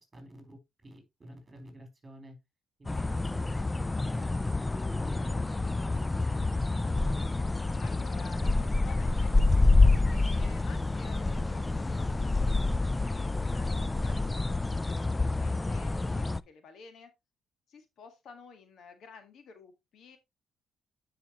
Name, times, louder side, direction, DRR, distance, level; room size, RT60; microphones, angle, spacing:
voice 1, 0.1-2.4 2.8-6.3 13.4-13.6, equal, 20° right, 3.9 m, -50 dB
sound 1, 2.9-16.4, left 2 dB, 15° left, 0.3 m, -27 dB
voice 2, 7.8-17.1 17.7-20.2, left 5 dB, 65° left, 1.6 m, -53 dB
10.0 x 4.9 x 2.9 m
cardioid pair, 90°, 0 cm